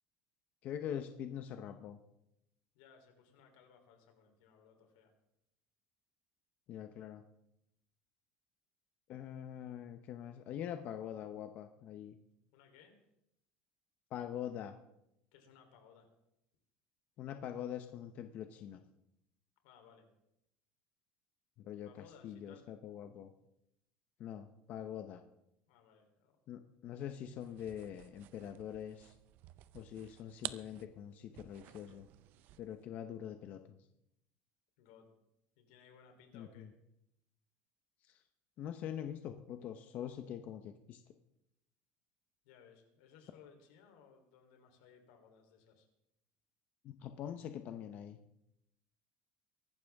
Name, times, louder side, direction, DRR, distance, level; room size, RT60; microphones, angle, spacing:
voice 1, 0.6-2.0 6.7-7.2 9.1-12.2 14.1-14.7 17.2-18.8 21.6-23.3 24.2-25.2 26.5-29.1 29.7-32.1 32.6-33.6 36.3-36.7 38.6-41.0 46.8-48.2, left 10 dB, 45° left, 7 dB, 0.8 m, -44 dB
voice 2, 2.7-5.1 12.5-13.0 15.3-16.1 19.6-20.1 21.8-22.6 25.7-26.6 34.8-35.1 35.6-36.7 42.4-45.9, left 7 dB, 90° left, 4 dB, 3.5 m, -62 dB
sound 1, 27.4-32.8, right 15 dB, 50° right, 0.6 m, -50 dB
23.5 x 12.0 x 3.6 m, 0.82 s
cardioid pair, 160°, 4 cm